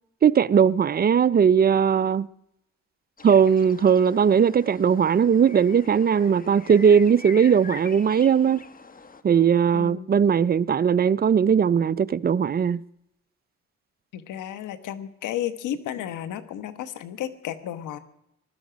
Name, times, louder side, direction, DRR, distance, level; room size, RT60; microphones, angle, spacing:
voice 1, 0.2-2.3 3.2-8.6 9.2-12.8, right 7 dB, 30° right, 0.5 m, -19 dB
sound 1, 3.2-9.2, left 4 dB, 30° left, 1.2 m, -44 dB
voice 2, 9.7-10.1 14.1-18.0, left 11 dB, 85° left, 1.3 m, -33 dB
21.0 x 12.5 x 5.2 m
cardioid pair, 90°, 30 cm